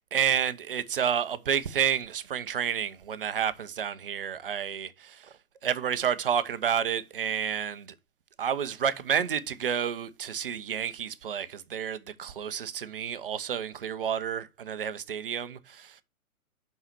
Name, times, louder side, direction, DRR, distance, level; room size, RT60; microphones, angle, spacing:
voice 1, 0.0-5.3 5.6-7.9 8.4-16.0, right 8 dB, 40° right, 0.7 m, -30 dB
5.7 x 5.6 x 6.7 m
figure-of-eight pair, 125°, 43 cm